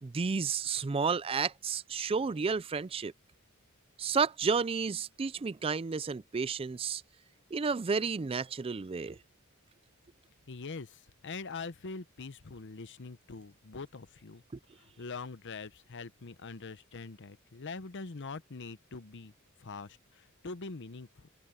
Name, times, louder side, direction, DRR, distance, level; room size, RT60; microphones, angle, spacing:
voice 1, 0.0-3.1 4.0-7.0 7.5-9.2, right 5 dB, 25° right, 0.4 m, -31 dB
voice 2, 10.5-14.4 14.8-19.3 19.6-21.3, left 4 dB, 55° left, 0.8 m, -43 dB
head